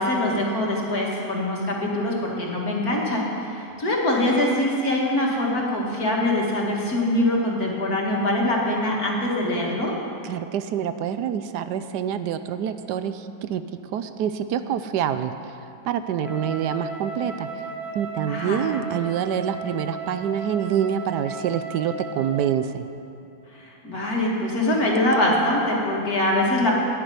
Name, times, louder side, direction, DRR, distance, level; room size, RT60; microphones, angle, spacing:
voice 1, 0.0-9.9 18.3-18.7 23.5-26.7, left 1 dB, 60° left, -3 dB, 2.6 m, -23 dB
voice 2, 10.2-15.3 15.8-17.5 17.9-22.9, right 9 dB, 85° right, 11 dB, 1.3 m, -26 dB
Wind instrument woodwind instrument, 16.2-22.6, right 3 dB, ahead, 1.5 m, -35 dB
10.5 x 9.7 x 9.4 m, 2.7 s
omnidirectional pair, 1.8 m